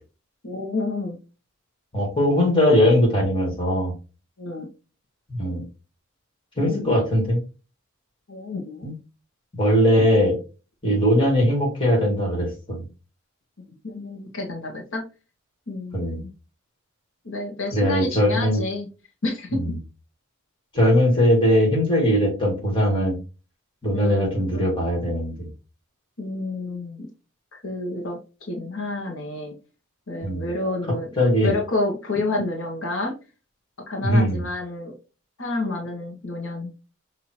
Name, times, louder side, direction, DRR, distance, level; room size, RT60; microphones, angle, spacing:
voice 1, 0.4-1.2 4.4-4.7 6.6-6.9 8.3-8.9 10.9-11.1 13.8-15.0 15.7-16.3 17.2-18.9 19.2-19.6 23.9-24.3 24.5-24.8 26.2-27.1 27.5-28.2 28.5-29.5 30.1-31.1 31.4-33.1 33.9-34.9 35.4-36.7, left 2 dB, 75° left, 1 dB, 1.2 m, -29 dB
voice 2, 1.9-3.9 5.3-5.6 6.6-7.4 8.8-8.9 9.6-10.4 10.8-12.8 15.9-16.2 17.7-18.6 19.5-19.7 20.7-23.1 23.8-25.5 30.2-30.5 31.2-31.5 34.0-34.4, equal, 25° left, -1 dB, 2.1 m, -20 dB
5.6 x 2.8 x 3.0 m, 0.32 s
head